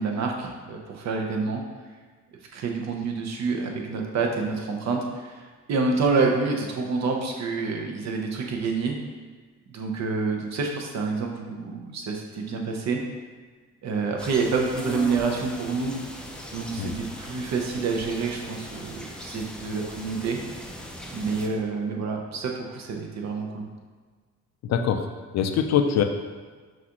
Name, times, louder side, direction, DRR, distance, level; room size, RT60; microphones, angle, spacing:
voice 1, 0.0-1.6 2.5-9.0 9.7-13.0 13.8-16.1 16.5-20.4 21.1-23.7, right 4 dB, 60° right, 1 dB, 0.7 m, -28 dB
sound 1, 14.2-21.5, left 1 dB, 5° left, 0.4 m, -39 dB
voice 2, 24.6-25.1 25.3-26.0, left 8 dB, 60° left, 6 dB, 0.4 m, -23 dB
5.9 x 2.5 x 2.9 m, 1.5 s
cardioid pair, 90°, 30 cm